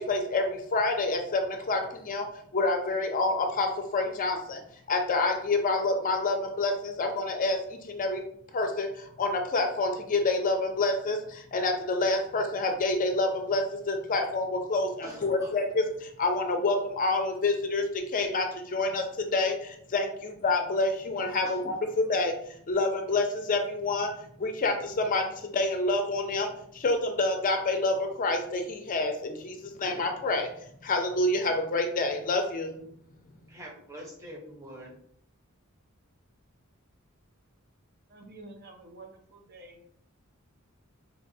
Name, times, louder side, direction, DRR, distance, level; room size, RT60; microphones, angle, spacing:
voice 1, 0.0-2.3 2.5-4.6 4.9-8.2 8.5-24.1 24.4-32.8, left 2 dB, 40° left, 5 dB, 0.5 m, -28 dB
voice 2, 15.0-15.5 21.4-21.6 29.7-29.8 33.5-35.0, right 1 dB, 15° right, -2 dB, 0.8 m, -44 dB
voice 3, 38.1-39.9, right 2 dB, 50° right, 3 dB, 0.6 m, -49 dB
4.0 x 2.2 x 2.6 m, 0.64 s
head